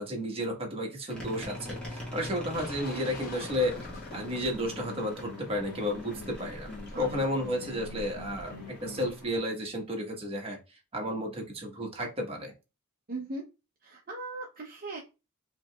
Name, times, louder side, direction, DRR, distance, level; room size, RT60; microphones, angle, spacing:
voice 1, 0.0-3.8 4.1-6.7 7.0-8.5 8.8-10.6 10.9-12.5, equal, 25° right, 0 dB, 1.2 m, -32 dB
sound 1, 1.1-9.4, left 1 dB, 5° left, 1.5 m, -43 dB
sound 2, 2.5-9.1, left 3 dB, 45° left, 0.9 m, -44 dB
voice 2, 6.9-7.3 13.1-13.4 13.8-15.0, right 2 dB, 40° right, 0 dB, 0.7 m, -38 dB
5.1 x 2.9 x 2.3 m, 0.28 s
head